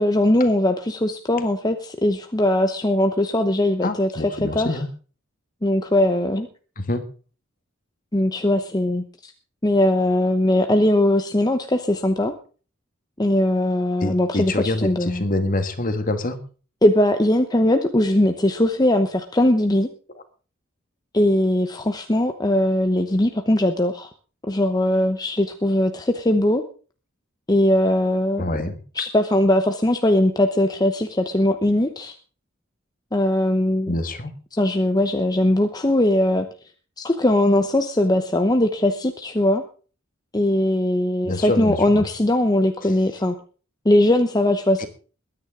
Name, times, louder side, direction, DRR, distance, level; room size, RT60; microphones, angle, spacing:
voice 1, 0.0-4.1 4.5-4.7 5.6-6.5 8.1-9.3 9.6-12.3 13.2-15.2 16.8-19.9 21.1-24.1 24.5-26.6 27.5-28.4 29.0-32.1 33.1-33.9 34.6-36.5 37.0-39.6 40.3-43.3 43.8-44.8, left 1 dB, 20° left, 6 dB, 0.9 m, -20 dB
voice 2, 3.8-4.9 6.8-7.0 14.0-16.4 28.4-28.8 33.9-34.3 41.2-42.1 44.8-44.9, left 2 dB, 40° left, 9 dB, 1.7 m, -26 dB
22.0 x 9.7 x 3.8 m, 0.39 s
head